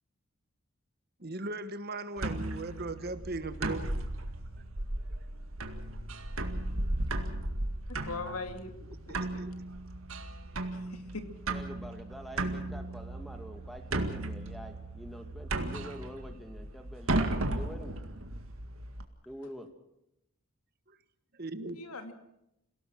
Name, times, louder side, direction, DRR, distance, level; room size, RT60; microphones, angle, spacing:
voice 1, 1.2-3.9 9.1-9.5 21.4-21.8, right 2 dB, 45° right, 12 dB, 1.3 m, -38 dB
sound 1, 2.2-19.0, right 2 dB, 70° right, 2.0 m, -35 dB
voice 2, 8.0-8.7 9.1-9.2 10.9-11.0 21.7-22.1, left 3 dB, 85° left, 7 dB, 2.5 m, -39 dB
voice 3, 11.5-18.0 19.3-19.7, equal, ahead, 5 dB, 2.0 m, -46 dB
27.5 x 17.5 x 6.2 m, 0.83 s
head